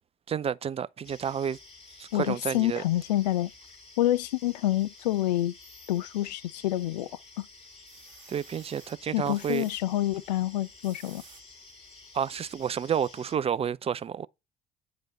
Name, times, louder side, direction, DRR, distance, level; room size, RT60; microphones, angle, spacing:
voice 1, 0.3-1.6 2.0-2.8 8.3-9.6 12.1-14.3, right 8 dB, 30° right, 0.5 m, -30 dB
sound 1, 1.0-13.3, left 3 dB, 30° left, 5.2 m, -51 dB
voice 2, 2.1-3.5 4.0-5.5 5.9-7.1 7.4-7.5 9.1-11.2, left 14 dB, 75° left, 0.5 m, -27 dB
sound 2, 6.5-7.2 7.6-9.8 10.6-11.4 12.0-12.1 12.5-12.6, right 9 dB, 70° right, 1.6 m, -55 dB
9.1 x 5.0 x 4.0 m
figure-of-eight pair, 55°, 21 cm